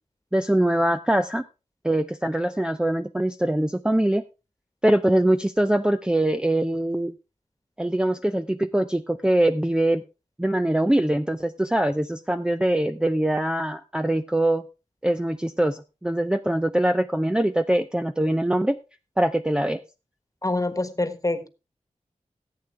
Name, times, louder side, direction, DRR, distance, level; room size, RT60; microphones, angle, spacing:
voice 1, 0.3-1.4 1.8-4.2 4.8-7.1 7.8-10.0 10.4-14.6 15.0-18.8 19.2-19.8, right 1 dB, 5° right, 7 dB, 0.5 m, -23 dB
voice 2, 20.4-21.5, left 2 dB, 25° left, 11 dB, 1.4 m, -26 dB
15.0 x 8.4 x 3.3 m, 0.29 s
wide cardioid pair, 60°, 13 cm